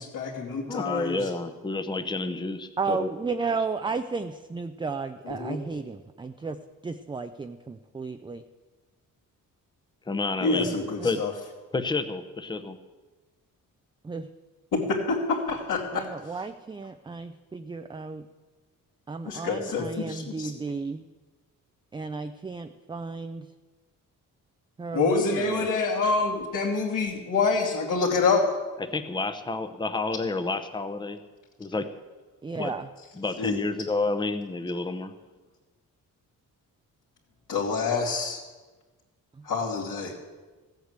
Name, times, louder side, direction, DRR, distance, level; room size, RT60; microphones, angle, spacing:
voice 1, 0.0-1.2 5.2-5.6 10.4-11.3 14.7-16.0 19.2-20.5 24.9-28.4 33.4-33.6 37.5-38.4 39.4-40.1, left 4 dB, 65° left, -8 dB, 2.7 m, -26 dB
voice 2, 0.7-3.1 10.1-10.7 11.0-11.2 11.7-12.8 28.8-31.2 31.6-31.9 32.5-32.7 33.2-35.1, left 3 dB, 15° left, 9 dB, 0.8 m, -30 dB
voice 3, 2.8-6.6 6.8-8.4 11.0-11.1 14.0-14.3 15.9-18.2 19.1-21.1 21.9-23.5 24.8-25.7 32.4-32.9, right 4 dB, 15° right, 8 dB, 0.4 m, -33 dB
15.5 x 8.2 x 8.0 m, 1.3 s
wide cardioid pair, 150°, 34 cm